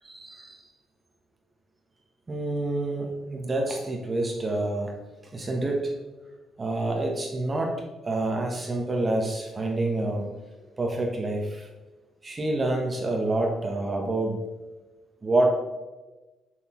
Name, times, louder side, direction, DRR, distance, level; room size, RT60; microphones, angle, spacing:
voice 1, 0.0-0.6 2.3-4.9 5.3-5.9 6.6-10.3 10.8-11.7 12.2-14.4 15.2-15.5, right 2 dB, 25° right, 1 dB, 1.0 m, -27 dB
6.2 x 5.6 x 3.0 m, 1.1 s
cardioid pair, 115°, 0 cm